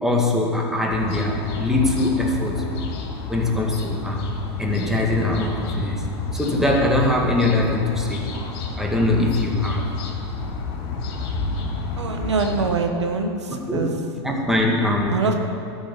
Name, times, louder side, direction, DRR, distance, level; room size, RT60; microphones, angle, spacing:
voice 1, 0.0-2.6 3.3-4.3 4.6-6.0 6.3-8.4 8.8-9.9 13.5-15.3, left 2 dB, 5° right, -1 dB, 2.0 m, -22 dB
sound 1, 0.9-12.7, left 4 dB, 60° left, 2.7 m, -30 dB
voice 2, 12.0-13.9 15.1-15.3, right 4 dB, 90° right, 4 dB, 1.3 m, -24 dB
13.0 x 7.1 x 8.5 m, 2.7 s
hypercardioid pair, 105°, 14 cm